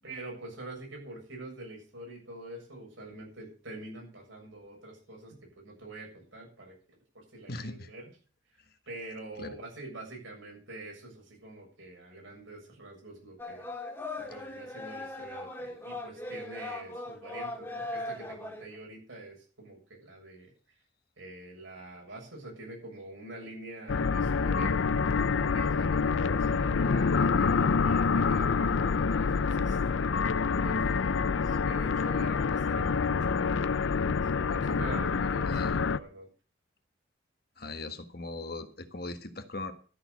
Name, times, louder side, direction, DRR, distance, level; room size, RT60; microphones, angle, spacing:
voice 1, 0.0-6.8 7.1-8.2 8.9-13.7 14.3-20.5 21.2-24.8 25.5-30.1 30.6-34.1 34.5-36.3, right 2 dB, 80° right, -1 dB, 7.4 m, -45 dB
voice 2, 7.5-7.9 9.4-9.5 35.5-35.8 37.6-39.7, left 2 dB, 50° left, 7 dB, 1.5 m, -39 dB
sound 1, 13.4-18.8, left 2 dB, 10° left, 1.9 m, -39 dB
sound 2, 23.9-36.0, left 5 dB, 75° left, 0.5 m, -27 dB
13.0 x 7.0 x 8.1 m, 0.39 s
head